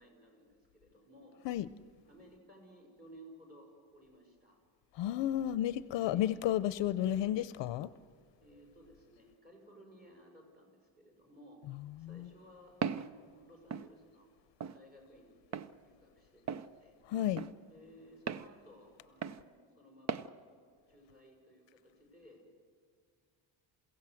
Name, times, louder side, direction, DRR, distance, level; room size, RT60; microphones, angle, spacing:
voice 1, 0.0-1.4 2.0-4.6 6.1-6.3 8.4-11.6 12.0-14.3 14.7-17.0 17.6-20.4 20.9-22.4, equal, 20° right, 5.8 m, -58 dB
voice 2, 5.0-7.9 11.7-12.3 17.1-17.4, left 12 dB, 65° left, 0.7 m, -33 dB
Walk footsteps, 12.8-13.1 13.7-13.9 14.6-14.8 15.5-15.7 16.5-16.7 17.4-17.5 18.3-18.5 19.2-19.4 20.1-20.3, right 7 dB, 35° right, 0.6 m, -36 dB
28.0 x 16.5 x 7.7 m
cardioid pair, 170°, 46 cm